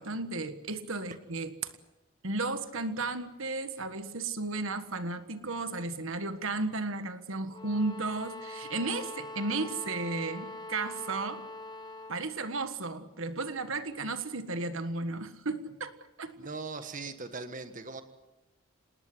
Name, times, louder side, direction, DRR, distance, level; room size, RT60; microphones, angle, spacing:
voice 1, 0.0-1.7 2.2-11.4 12.1-16.5, right 3 dB, 60° right, 10 dB, 1.6 m, -34 dB
sound 1, 7.5-12.2, left 1 dB, 20° left, 1.3 m, -43 dB
voice 2, 16.4-18.0, right 4 dB, 35° right, 8 dB, 1.5 m, -39 dB
27.5 x 20.0 x 7.9 m, 1.1 s
head